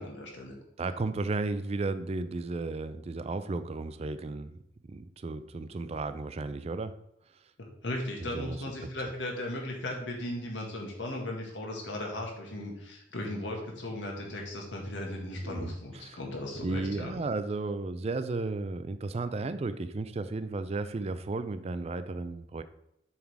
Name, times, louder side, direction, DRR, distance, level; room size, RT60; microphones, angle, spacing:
voice 1, 0.0-0.6 7.6-17.2, left 1 dB, 85° left, 0 dB, 1.7 m, -37 dB
voice 2, 0.8-4.6 4.9-7.0 8.2-8.9 15.4-16.2 16.6-22.6, right 3 dB, 35° right, 11 dB, 0.4 m, -34 dB
7.2 x 3.7 x 4.6 m, 0.80 s
head